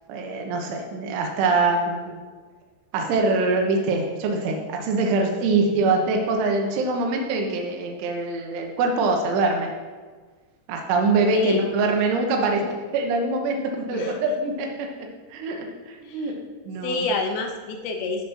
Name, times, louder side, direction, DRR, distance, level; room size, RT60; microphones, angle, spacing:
voice 1, 0.1-2.2 2.9-9.7 10.7-14.9 15.3-17.1, right 3 dB, 85° right, 2 dB, 3.6 m, -24 dB
voice 2, 11.3-11.6 13.9-14.3 16.0-16.3 16.8-18.2, left 3 dB, 80° left, 4 dB, 2.2 m, -28 dB
14.0 x 5.1 x 5.7 m, 1.4 s
omnidirectional pair, 5.4 m